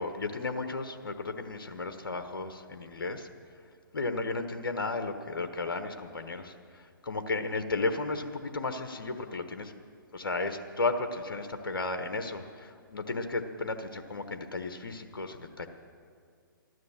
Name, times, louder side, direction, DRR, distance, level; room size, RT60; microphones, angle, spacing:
voice 1, 0.0-3.3 3.9-9.7 10.1-15.7, left 3 dB, 80° left, 7 dB, 1.3 m, -34 dB
14.0 x 12.5 x 7.2 m, 2.2 s
hypercardioid pair, 140°, 12 cm